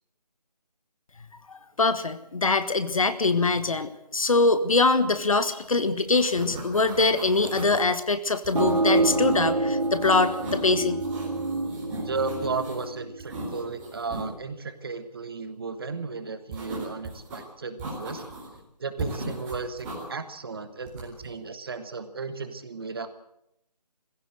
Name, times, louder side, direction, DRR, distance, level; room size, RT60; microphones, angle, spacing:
voice 1, 1.5-11.0, left 3 dB, 55° left, 11 dB, 1.6 m, -23 dB
sound 1, 5.6-5.8 6.1-7.9 8.4-9.5 9.8-10.7 11.0-12.9 13.2-14.3 16.5-17.4 17.8-18.6 19.0-20.0 20.8-21.3, right 2 dB, 10° right, 4.3 m, -38 dB
sound 2, 8.5-13.9, right 2 dB, 65° right, 4.1 m, -27 dB
voice 2, 12.0-18.2 18.8-23.1, right 4 dB, 35° right, 10 dB, 1.4 m, -34 dB
21.5 x 16.0 x 7.9 m, 0.78 s
figure-of-eight pair, 165°, 21 cm